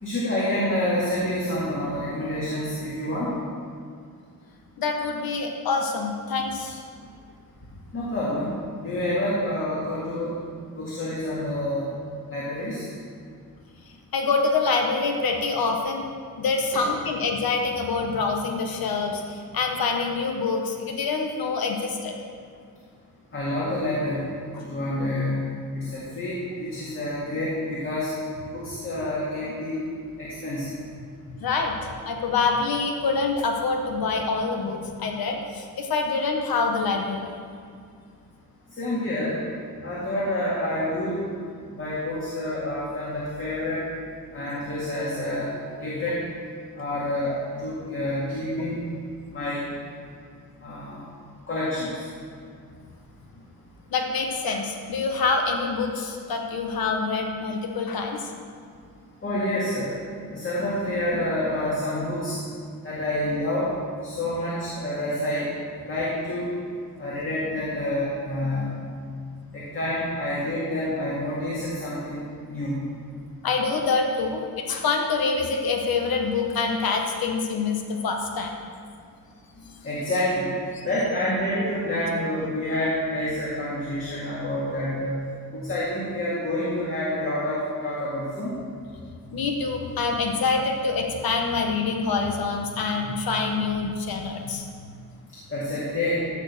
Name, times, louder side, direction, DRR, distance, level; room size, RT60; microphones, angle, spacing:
voice 1, 0.0-3.3 7.9-8.5 8.8-10.4 10.7-11.9 12.3-12.9 16.7-16.9 23.3-24.3 24.6-28.1 28.5-29.8 30.2-30.7 38.8-39.4 39.8-41.2 41.7-43.9 44.3-45.5 45.8-46.2 46.8-48.9 49.3-49.7 50.6-51.0 51.5-52.1 59.2-60.0 60.3-62.4 62.8-63.7 64.0-65.5 65.9-66.5 67.0-68.8 69.5-72.8 79.8-80.5 80.8-85.3 85.5-88.5 95.5-96.2, left 1 dB, 35° left, -8 dB, 2.2 m, -28 dB
voice 2, 4.8-6.8 14.1-22.1 24.5-24.6 31.4-31.7 32.0-37.3 53.9-58.2 73.4-78.5 80.7-80.9 89.3-94.7, left 4 dB, 80° left, 2 dB, 1.2 m, -26 dB
14.0 x 4.7 x 6.6 m, 2.2 s
wide cardioid pair, 160°, 36 cm